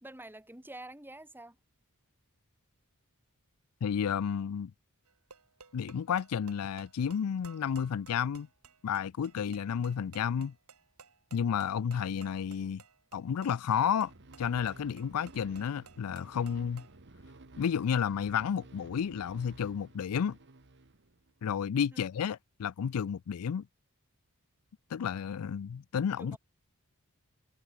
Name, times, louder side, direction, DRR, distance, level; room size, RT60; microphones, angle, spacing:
voice 1, 0.0-1.6 21.9-22.0 26.2-26.4, right 1 dB, 10° right, 3.2 m, -47 dB
voice 2, 3.8-4.7 5.7-8.5 8.8-10.5 11.3-12.8 13.1-14.1 14.4-16.8 17.6-20.4 21.4-23.7 24.9-26.4, left 7 dB, 75° left, 0.4 m, -31 dB
sound 1, 5.1-17.0, right 5 dB, 85° right, 4.8 m, -57 dB
sound 2, 14.0-21.4, right 2 dB, 55° right, 1.5 m, -54 dB
head